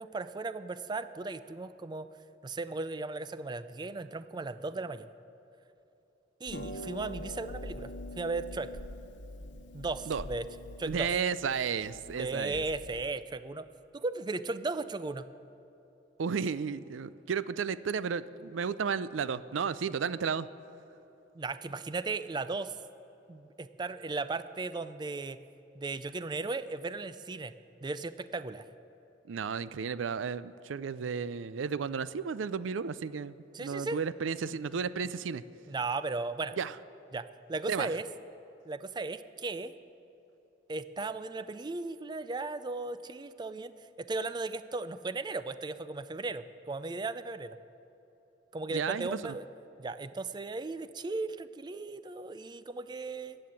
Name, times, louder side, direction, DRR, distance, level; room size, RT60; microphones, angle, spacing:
voice 1, 0.0-2.1 2.4-5.1 6.4-8.7 9.7-10.5 10.8-11.1 12.2-13.7 13.9-15.3 21.3-22.7 23.3-25.4 25.7-27.5 27.8-28.6 33.5-34.0 35.7-36.5 37.1-38.0 38.7-39.7 40.7-43.7 44.0-47.6 48.5-49.4 49.8-53.4, right 3 dB, 25° right, 13 dB, 0.4 m, -36 dB
Harp, 6.4-13.2, left 1 dB, 70° left, 1.0 m, -44 dB
voice 2, 10.9-12.6 16.2-20.5 29.3-35.4 36.6-36.7 37.7-37.9 48.7-49.3, right 6 dB, 90° right, 17 dB, 0.4 m, -33 dB
14.0 x 7.8 x 8.6 m, 3.0 s
head